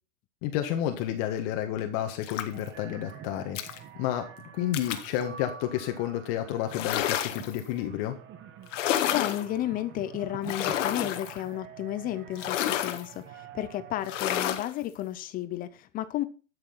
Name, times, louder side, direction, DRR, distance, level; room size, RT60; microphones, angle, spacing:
voice 1, 0.4-4.2 4.5-8.1, left 11 dB, 40° left, 1.6 m, -31 dB
sound 1, 2.2-2.7 3.6-3.8 4.7-5.1 6.7-7.6 8.7-9.5 10.4-11.4 12.4-13.1 14.0-14.7, left 11 dB, 60° left, 1.7 m, -30 dB
sound 2, 2.5-14.4, right 8 dB, 30° right, 1.6 m, -47 dB
voice 2, 9.1-16.2, left 13 dB, 20° left, 0.6 m, -33 dB
12.0 x 6.6 x 5.8 m
hypercardioid pair, 120°, 42 cm